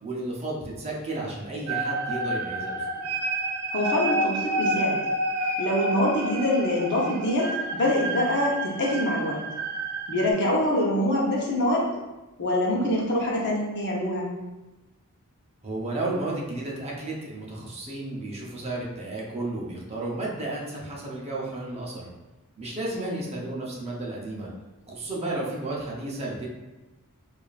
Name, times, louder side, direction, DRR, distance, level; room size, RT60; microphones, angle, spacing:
voice 1, 0.0-3.1 15.6-22.1 22.6-24.5 24.9-26.5, right 2 dB, 30° right, -4 dB, 0.7 m, -33 dB
sound 1, 1.7-10.3, right 1 dB, 85° right, 0.5 m, -29 dB
voice 2, 3.7-5.0 5.6-9.4 10.1-11.9 12.4-14.3 22.9-23.2, left 1 dB, 55° left, -3 dB, 0.8 m, -25 dB
4.8 x 2.5 x 2.4 m, 1.1 s
head